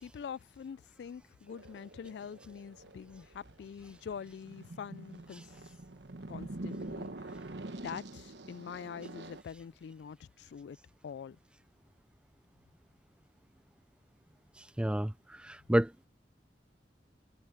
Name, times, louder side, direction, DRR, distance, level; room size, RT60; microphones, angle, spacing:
voice 1, 0.0-5.4 6.3-7.4 7.8-10.8 11.0-11.4, left 7 dB, 65° left, 0.3 m, -45 dB
sound 1, 1.5-9.4, right 2 dB, 75° right, 1.2 m, -46 dB
voice 2, 14.8-15.9, right 1 dB, 5° right, 0.4 m, -29 dB
head